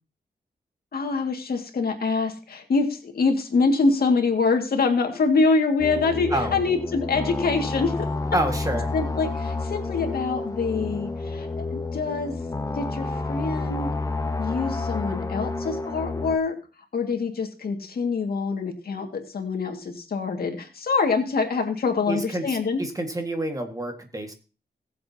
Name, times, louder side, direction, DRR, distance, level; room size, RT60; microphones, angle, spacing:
voice 1, 0.9-8.1 8.9-12.3 12.8-13.9 14.4-16.5 16.9-22.8, left 4 dB, 70° left, 4 dB, 2.2 m, -25 dB
sound 1, 5.8-16.4, left 3 dB, 20° left, 1.0 m, -30 dB
voice 2, 6.3-6.6 8.3-8.9 22.1-24.3, right 1 dB, 20° right, 5 dB, 1.8 m, -28 dB
20.0 x 7.5 x 2.9 m, 0.35 s
wide cardioid pair, 120°, 16 cm